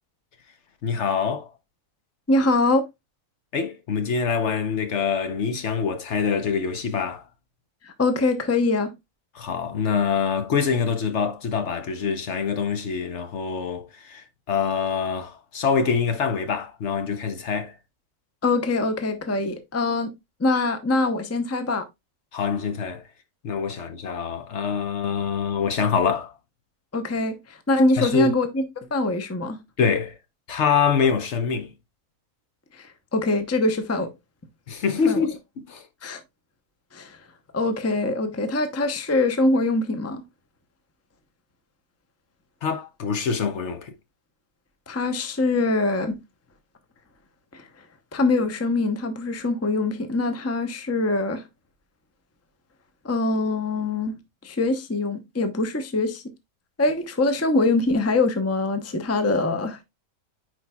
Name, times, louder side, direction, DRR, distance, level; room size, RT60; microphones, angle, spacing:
voice 1, 0.8-1.5 3.5-7.2 9.3-17.8 22.3-23.0 23.4-26.3 28.0-28.3 29.8-30.2 30.5-31.7 34.7-35.9 42.6-43.9, left 6 dB, 60° left, 1.0 m, -25 dB
voice 2, 2.3-2.8 7.8-8.9 18.4-20.1 20.4-21.8 26.9-27.4 27.7-28.6 28.9-29.6 32.8-32.9 33.1-34.1 35.1-35.2 36.0-36.2 36.9-37.2 37.5-40.2 44.9-46.2 47.5-47.6 48.1-51.4 53.0-54.1 54.4-56.2 56.8-59.8, left 2 dB, 15° left, 0.6 m, -23 dB
10.0 x 4.6 x 2.3 m
omnidirectional pair, 1.4 m